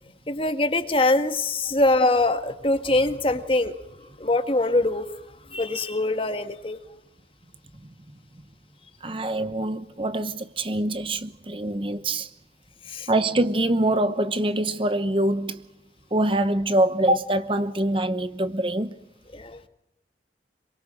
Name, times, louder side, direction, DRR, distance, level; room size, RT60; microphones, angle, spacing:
voice 1, 0.3-3.8 4.2-5.1 5.5-6.8 12.9-13.1 19.3-19.6, left 2 dB, 30° left, 1.7 m, -23 dB
voice 2, 9.0-12.3 13.1-15.6 16.1-18.9, right 1 dB, 30° right, 0.9 m, -24 dB
27.0 x 23.0 x 7.5 m
head